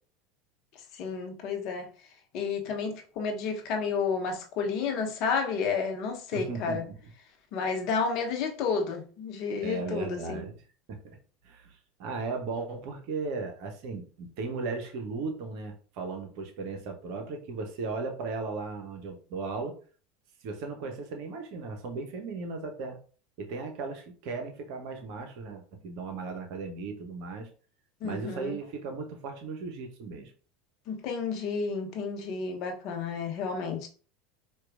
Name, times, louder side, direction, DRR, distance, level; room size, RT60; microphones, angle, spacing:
voice 1, 0.9-1.9 2.3-6.8 7.5-10.4 28.0-28.6 30.9-33.9, left 5 dB, 50° left, 0.8 m, -31 dB
voice 2, 6.3-6.9 9.6-10.5 10.9-11.2 11.4-19.7 20.4-23.0 23.4-27.5 28.0-30.3, right 4 dB, 60° right, 0.9 m, -36 dB
4.4 x 2.4 x 2.4 m
figure-of-eight pair, 80°, 0 cm